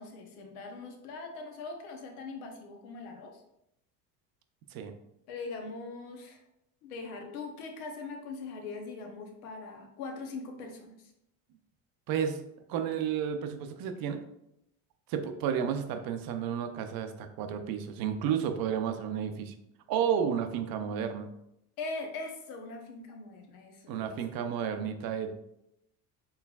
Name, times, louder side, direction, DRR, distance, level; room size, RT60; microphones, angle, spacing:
voice 1, 0.0-3.4 5.3-6.4 6.8-11.1 21.8-24.0, left 3 dB, 80° left, 3 dB, 0.9 m, -41 dB
voice 2, 12.1-12.4 12.7-14.2 15.1-19.5 19.9-21.3 23.9-25.3, right 8 dB, 55° right, 7 dB, 0.6 m, -32 dB
4.5 x 3.2 x 2.3 m, 0.81 s
supercardioid pair, 85°, 43 cm